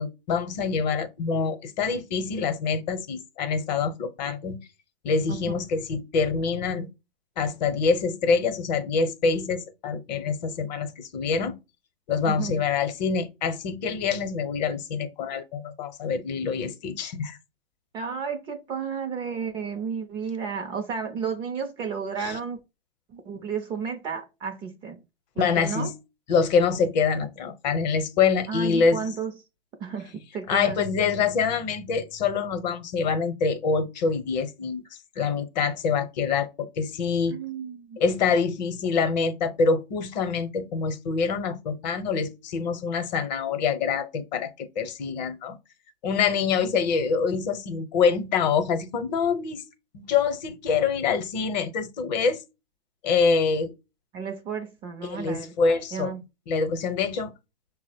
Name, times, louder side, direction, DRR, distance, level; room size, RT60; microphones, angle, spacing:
voice 1, 0.0-4.6 5.0-6.9 7.4-11.6 12.1-17.4 22.2-22.4 25.4-25.9 26.3-29.1 30.5-34.8 35.2-37.4 38.0-45.6 46.0-49.6 49.9-52.4 53.0-53.7 55.0-56.1 56.5-57.3, left 5 dB, 45° left, 0.8 m, -25 dB
voice 2, 5.3-5.6 12.2-12.5 17.9-22.6 23.1-25.0 25.4-25.9 28.5-29.3 29.8-30.8 37.3-38.0 54.1-55.6 55.9-56.2, right 6 dB, 15° right, 0.5 m, -32 dB
5.9 x 2.1 x 4.3 m
hypercardioid pair, 125°, 29 cm